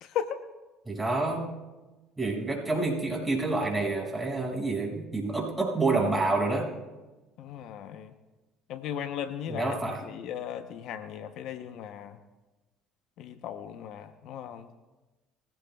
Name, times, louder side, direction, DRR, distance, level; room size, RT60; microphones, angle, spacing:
voice 1, 0.0-0.4 7.4-8.1 8.7-9.7 10.0-12.2 13.2-14.7, left 9 dB, 65° left, 10 dB, 0.8 m, -37 dB
voice 2, 0.9-1.6 2.2-6.7 9.5-10.0, right 3 dB, 15° right, -2 dB, 5.9 m, -28 dB
22.5 x 16.0 x 2.3 m, 1.2 s
hypercardioid pair, 70°, 0 cm